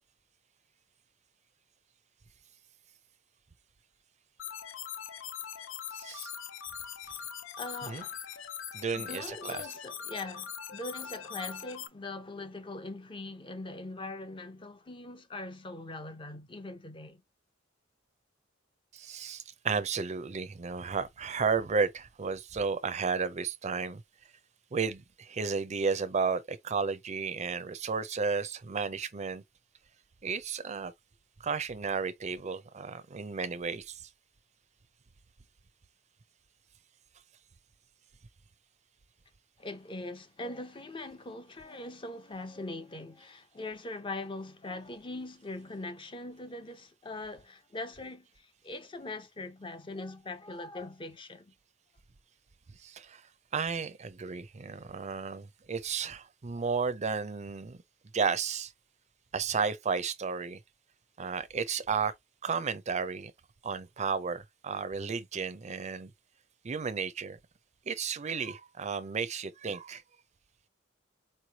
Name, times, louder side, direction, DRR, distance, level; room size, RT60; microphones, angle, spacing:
sound 1, 4.4-11.9, left 8 dB, 80° left, 0.5 m, -42 dB
voice 1, 5.9-6.3 7.8-8.0 8.7-9.7 18.9-24.0 24.7-29.4 30.2-30.9 31.4-34.1 52.8-53.3 53.5-57.8 58.1-58.7 59.3-60.6 61.2-62.1 62.4-63.3 63.6-66.1 66.6-67.4 67.9-70.0, right 5 dB, 35° right, 0.5 m, -33 dB
voice 2, 7.6-8.5 8.9-17.2 39.6-51.5, left 2 dB, 25° left, 0.6 m, -41 dB
4.4 x 3.1 x 2.8 m
head